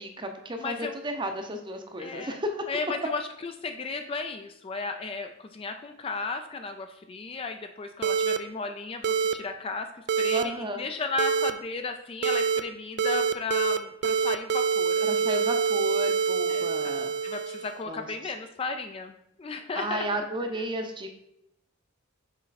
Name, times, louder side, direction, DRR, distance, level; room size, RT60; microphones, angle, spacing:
voice 1, 0.0-2.7 10.3-10.8 15.0-17.1 17.9-18.3 19.7-21.1, equal, 25° right, 5 dB, 0.7 m, -33 dB
voice 2, 0.6-0.9 2.0-2.4 2.7-9.9 10.2-15.3 16.5-16.9 17.2-20.2, left 4 dB, 25° left, 6 dB, 0.3 m, -35 dB
sound 1, 8.0-8.4 9.0-9.3 10.1-10.4 11.2-11.5 12.2-12.6 13.0-13.8 14.0-17.8, right 6 dB, 55° right, 0.3 m, -25 dB
6.3 x 4.3 x 4.1 m, 0.79 s
head